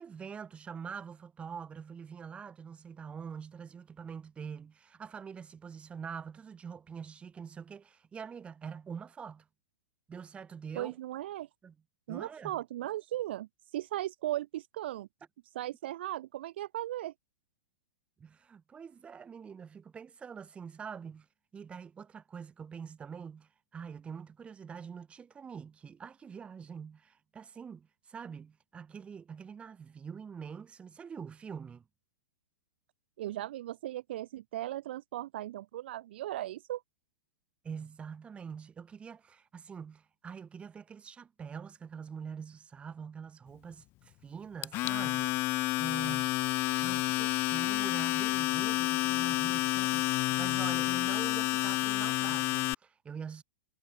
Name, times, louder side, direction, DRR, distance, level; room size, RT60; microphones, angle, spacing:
voice 1, 0.0-9.5 10.1-11.0 11.6-11.7 12.1-12.6 18.2-21.3 21.5-31.8 37.6-46.3 46.8-53.4, right 6 dB, 15° right, 2.3 m, -45 dB
voice 2, 10.8-11.5 12.1-15.1 15.5-17.1 33.2-36.8, right 14 dB, 60° right, 0.7 m, -37 dB
Domestic sounds home sounds, 44.6-52.7, left 19 dB, 35° left, 1.5 m, -30 dB
hypercardioid pair, 110°, 7 cm